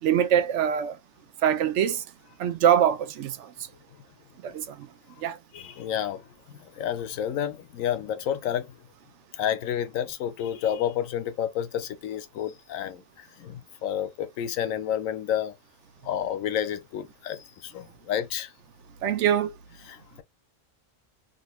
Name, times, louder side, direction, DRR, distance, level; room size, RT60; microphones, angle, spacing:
voice 1, 0.0-1.0 1.4-2.0 2.4-3.5 4.4-4.9 5.2-5.4 19.0-19.5, right 9 dB, 70° right, 0.8 m, -23 dB
voice 2, 5.5-8.7 9.3-15.5 16.0-18.5 19.9-20.2, left 10 dB, 90° left, 1.0 m, -30 dB
2.9 x 2.5 x 3.0 m
omnidirectional pair, 1.3 m